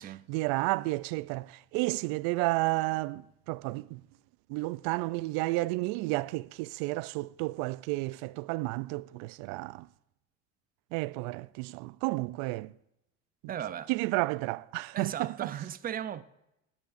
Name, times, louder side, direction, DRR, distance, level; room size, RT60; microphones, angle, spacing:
voice 1, 0.3-4.0 4.5-9.9 10.9-12.7 13.9-15.5, right 21 dB, 80° right, 0.5 m, -31 dB
voice 2, 13.5-13.9 14.9-16.2, right 10 dB, 25° right, 0.5 m, -36 dB
18.0 x 14.5 x 2.6 m
cardioid pair, 140°, 34 cm